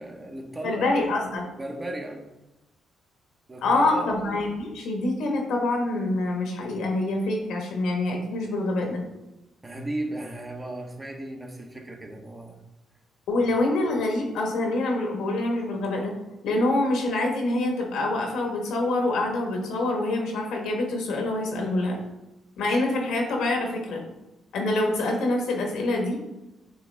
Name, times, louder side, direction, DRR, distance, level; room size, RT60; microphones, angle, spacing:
voice 1, 0.0-1.1 1.6-2.3 3.5-4.3 9.6-12.6, right 1 dB, 20° right, 2 dB, 1.1 m, -35 dB
voice 2, 0.6-1.4 3.6-9.0 13.3-16.1 16.4-22.0 22.6-24.0 24.5-26.2, left 2 dB, 80° left, 1 dB, 1.5 m, -26 dB
7.8 x 3.4 x 3.5 m, 1.0 s
cardioid pair, 90°, 0 cm